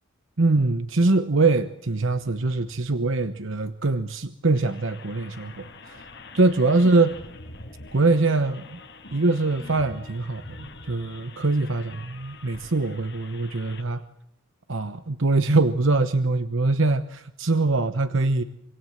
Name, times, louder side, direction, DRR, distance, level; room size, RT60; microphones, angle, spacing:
voice 1, 0.4-6.1 6.3-7.2 7.9-8.8 9.1-14.0 14.7-18.4, right 3 dB, 65° right, 10 dB, 1.0 m, -23 dB
sound 1, 4.5-13.8, left 3 dB, 55° left, 5.6 m, -45 dB
25.5 x 25.5 x 8.0 m, 0.78 s
head